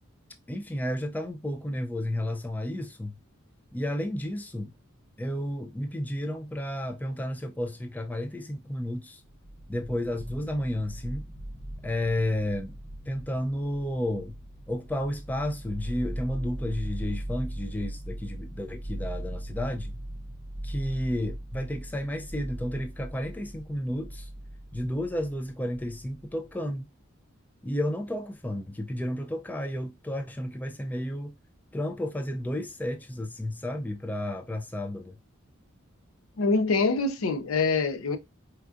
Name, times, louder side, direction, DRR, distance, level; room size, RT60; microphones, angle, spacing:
voice 1, 0.5-3.1 3.7-4.7 5.2-9.2 9.7-11.2 11.8-12.7 13.1-14.3 14.7-20.0 20.6-24.3 24.7-26.9 27.6-31.3 31.7-35.2, left 1 dB, 10° left, 0.4 m, -32 dB
sound 1, 9.1-26.5, right 1 dB, 20° right, 0.7 m, -39 dB
voice 2, 36.4-38.2, left 3 dB, 80° left, 0.5 m, -25 dB
4.4 x 2.4 x 2.4 m
head